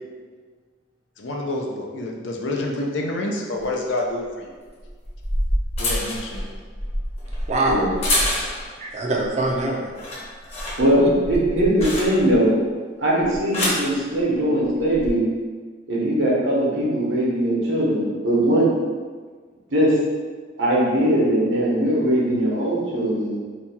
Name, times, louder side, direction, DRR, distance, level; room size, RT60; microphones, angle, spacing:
voice 1, 1.2-4.5 5.8-6.5, left 2 dB, 75° left, 1 dB, 0.5 m, -28 dB
sound 1, 3.6-3.7 4.8-8.8 9.2-9.6 9.9-12.5 13.2-13.9 14.8-15.1, left 1 dB, 35° left, 0.9 m, -27 dB
voice 2, 7.5-8.1 8.8-9.9 11.0-11.4, right 2 dB, 35° right, -1 dB, 0.5 m, -24 dB
voice 3, 10.8-12.5 13.0-15.3 15.9-18.7 19.7-19.9 20.6-23.3, right 1 dB, 75° right, -5 dB, 1.0 m, -20 dB
2.9 x 2.3 x 4.2 m, 1.5 s
head